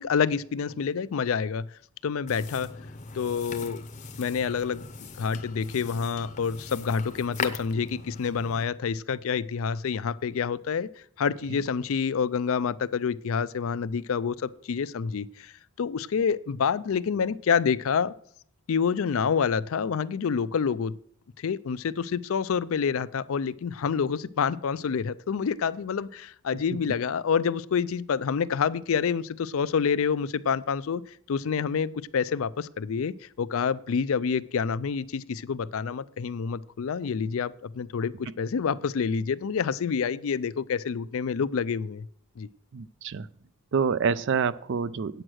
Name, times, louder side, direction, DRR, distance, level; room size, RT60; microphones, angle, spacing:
voice 1, 0.0-1.7 2.0-2.7 3.1-3.8 4.2-4.8 5.2-10.9 11.2-18.1 18.7-21.0 21.4-31.0 31.3-42.1 42.4-42.5, left 6 dB, 60° left, 17 dB, 0.4 m, -28 dB
sound 1, 2.3-8.6, left 4 dB, 35° left, 0.7 m, -39 dB
voice 2, 42.7-43.3 43.7-45.2, right 6 dB, 55° right, 17 dB, 0.4 m, -27 dB
8.8 x 7.9 x 6.2 m, 0.63 s
head